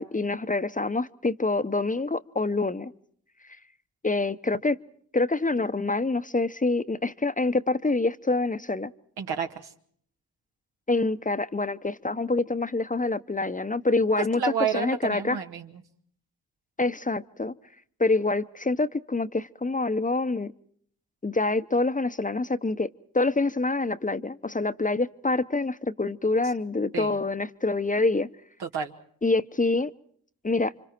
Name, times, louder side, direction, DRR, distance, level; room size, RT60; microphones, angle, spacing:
voice 1, 0.0-2.9 4.0-4.8 5.1-8.9 10.9-15.4 16.8-17.5 18.0-20.5 21.2-22.9 23.1-28.3 29.2-29.9 30.4-30.7, left 3 dB, 20° left, 0.9 m, -26 dB
voice 2, 9.2-9.7 14.4-15.8 26.9-27.2 28.6-28.9, right 6 dB, 75° right, 2.0 m, -30 dB
30.0 x 25.5 x 4.5 m
supercardioid pair, 40°, 38 cm